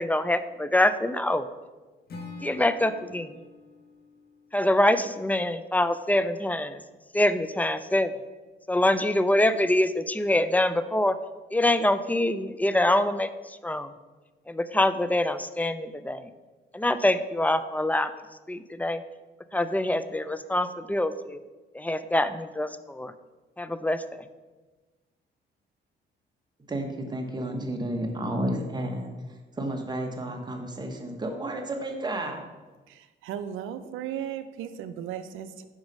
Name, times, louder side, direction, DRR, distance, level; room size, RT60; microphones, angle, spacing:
voice 1, 0.0-1.5 2.4-3.3 4.5-6.8 7.1-8.1 8.7-11.2 11.5-13.3 13.6-13.9 14.5-16.2 16.7-18.1 18.5-19.0 19.5-21.4 21.7-23.1 23.6-24.0, left 1 dB, 10° left, 13 dB, 0.3 m, -25 dB
Acoustic guitar / Strum, 2.1-5.3, left 3 dB, 50° left, 1.2 m, -46 dB
voice 2, 26.7-29.1 29.6-32.4, right 1 dB, 20° right, 3 dB, 1.1 m, -31 dB
voice 3, 32.9-35.6, right 9 dB, 90° right, 11 dB, 0.5 m, -36 dB
5.2 x 4.8 x 5.3 m, 1.2 s
cardioid pair, 90°, 20 cm